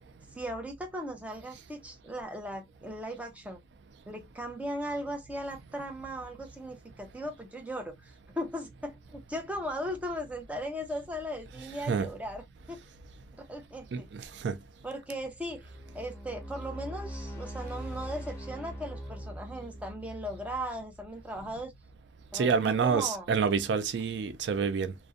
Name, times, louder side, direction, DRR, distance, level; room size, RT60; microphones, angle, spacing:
voice 1, 0.3-3.6 4.1-12.8 13.3-14.3 14.8-15.7 15.9-21.7 22.3-23.3, equal, 10° right, 0.5 m, -38 dB
voice 2, 11.5-12.1 13.9-14.6 22.3-25.0, right 5 dB, 65° right, 0.3 m, -28 dB
sound 1, 15.4-21.6, equal, 15° left, 0.9 m, -42 dB
2.5 x 2.0 x 2.4 m
head